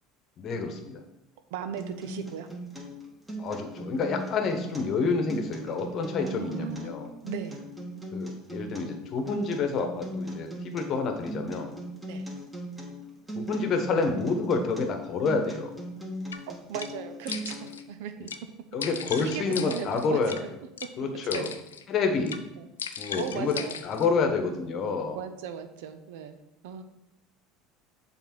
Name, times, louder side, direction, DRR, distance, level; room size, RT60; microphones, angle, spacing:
voice 1, 0.4-1.0 3.4-7.1 8.1-11.7 13.3-15.7 18.7-20.4 21.0-21.5 21.9-22.4 23.0-23.5 23.8-25.2, left 4 dB, 45° left, 5 dB, 1.0 m, -28 dB
voice 2, 1.5-2.5 6.2-6.9 7.2-7.6 12.1-12.3 16.5-18.3 18.8-20.5 21.3-21.5 22.6-22.7 23.2-23.8 25.1-26.4 26.6-26.8, right 8 dB, 70° right, 9 dB, 0.6 m, -37 dB
Acoustic guitar, 1.8-17.8, right 1 dB, 10° right, 1.6 m, -39 dB
sound 1, 16.3-16.4 16.8-16.9 17.3-17.8 18.3-18.4 18.8-20.4 20.8-20.9 21.3-21.8 22.3-22.4 22.8-24.1, left 7 dB, 85° left, 0.3 m, -37 dB
6.9 x 3.5 x 4.4 m, 0.88 s
hypercardioid pair, 70°, 0 cm